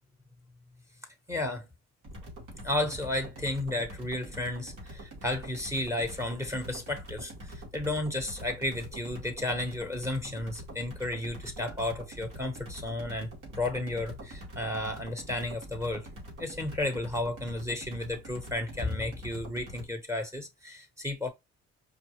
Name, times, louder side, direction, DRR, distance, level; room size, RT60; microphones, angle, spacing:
voice 1, 1.3-1.7 2.6-13.3 13.6-16.1 16.4-21.3, left 2 dB, 10° right, 1.1 m, -33 dB
sound 1, 2.0-19.9, equal, 90° right, 2.3 m, -45 dB
4.9 x 2.4 x 3.2 m
cardioid pair, 90°, 30 cm